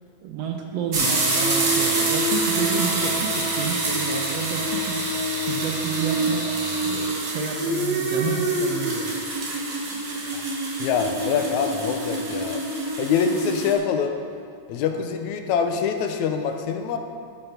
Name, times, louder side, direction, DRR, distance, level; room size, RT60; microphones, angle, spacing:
voice 1, 0.2-5.1 5.5-6.5 6.8-9.3, right 7 dB, 75° right, 3 dB, 1.6 m, -30 dB
sound 1, 0.9-13.7, right 2 dB, 45° right, 1.6 m, -25 dB
voice 2, 10.8-12.6 13.0-14.2 14.7-17.0, left 6 dB, 80° left, 5 dB, 2.1 m, -25 dB
11.5 x 5.5 x 5.7 m, 2.3 s
omnidirectional pair, 3.3 m